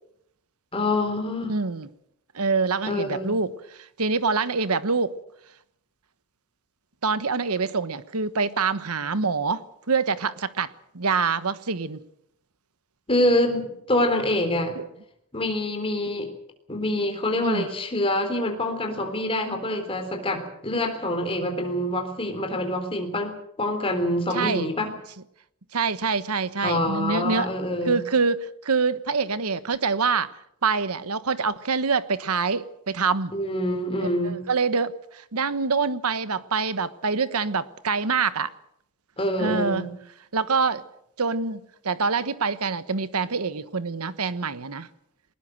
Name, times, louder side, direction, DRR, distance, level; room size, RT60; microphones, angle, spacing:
voice 1, 0.7-1.6 2.9-3.4 13.1-14.8 15.3-16.3 16.7-24.9 26.6-28.0 33.3-34.4 39.2-39.9, left 1 dB, 25° left, 3.8 m, -26 dB
voice 2, 1.5-1.9 2.3-5.1 7.0-12.0 14.8-14.9 17.4-17.7 24.3-24.7 25.7-27.5 27.9-30.3 30.6-33.4 34.0-38.5 39.4-39.9 40.3-40.8 41.2-44.9, right 4 dB, 85° right, 1.2 m, -25 dB
20.5 x 20.0 x 7.8 m
head